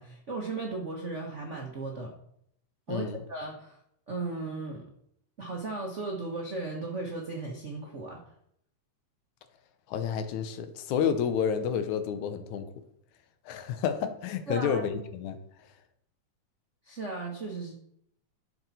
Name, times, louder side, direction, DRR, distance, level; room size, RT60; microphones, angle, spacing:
voice 1, 0.0-2.1 2.9-3.8 4.1-4.8 5.4-8.2 14.5-14.8 16.8-17.7, right 3 dB, 90° right, 0 dB, 0.6 m, -36 dB
voice 2, 2.9-3.2 9.9-12.7 13.5-15.4, left 7 dB, 80° left, 10 dB, 2.3 m, -30 dB
11.5 x 6.8 x 4.1 m, 0.72 s
omnidirectional pair, 3.3 m